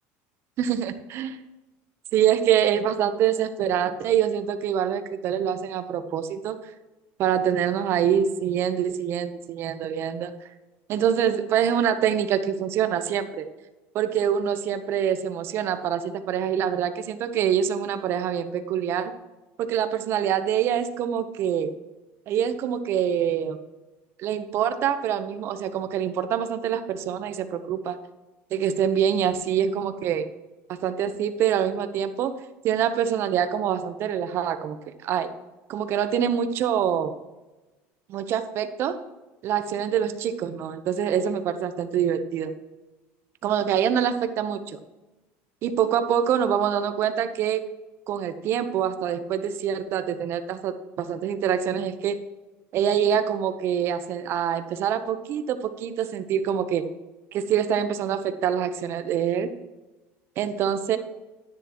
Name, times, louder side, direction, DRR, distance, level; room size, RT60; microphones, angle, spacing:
voice 1, 0.6-1.4 2.1-6.6 7.2-10.3 10.9-13.5 13.9-19.1 19.6-21.7 22.3-23.6 24.2-28.0 28.5-30.3 30.7-32.4 32.6-34.8 35.0-35.3 35.7-37.1 38.1-39.0 39.4-42.5 43.4-44.8 45.6-47.6 48.1-52.2 52.7-56.9 57.3-59.5 60.4-61.0, right 9 dB, 45° right, 10 dB, 0.9 m, -25 dB
10.0 x 10.0 x 3.0 m, 1.1 s
cardioid pair, 145°, 6 cm